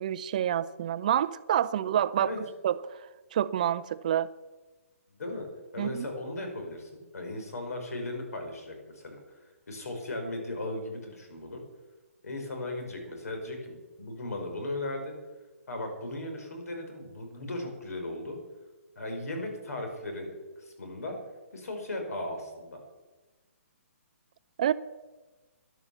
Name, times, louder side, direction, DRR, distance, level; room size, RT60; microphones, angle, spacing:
voice 1, 0.0-2.3 2.6-2.7 3.3-4.3 5.8-6.1 24.6-24.7, right 10 dB, 30° right, 0.4 m, -27 dB
voice 2, 5.1-5.5 5.7-9.2 9.7-11.6 12.2-15.1 15.7-18.4 19.0-21.1 21.5-22.8, left 2 dB, 85° left, 5.3 m, -37 dB
12.5 x 11.0 x 7.2 m
hypercardioid pair, 170°, 8 cm